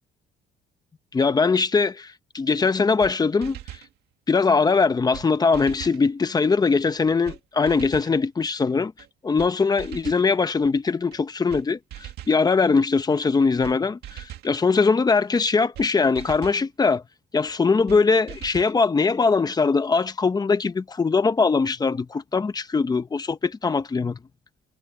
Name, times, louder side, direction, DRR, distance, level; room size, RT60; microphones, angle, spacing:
voice 1, 1.1-3.6 4.3-8.9 9.2-17.0 17.3-24.2, left 4 dB, 25° left, 1.1 m, -21 dB
sound 1, 2.6-2.7 3.0-3.1 3.4-3.9 4.7-4.8 5.1-5.3 5.5-6.0 6.9-7.0 7.3-7.4 7.7-8.2 9.0-9.1 9.4-9.5 9.8-10.3 11.1-11.2 11.5-11.6 11.9-12.4 13.2-13.3 13.6-13.8 14.0-14.5 15.4-15.5 15.8-15.9 16.2-16.6 17.5-17.6 17.9-18.0 18.3-18.8, right 13 dB, 75° right, 2.2 m, -40 dB
cardioid pair, 110°, 17 cm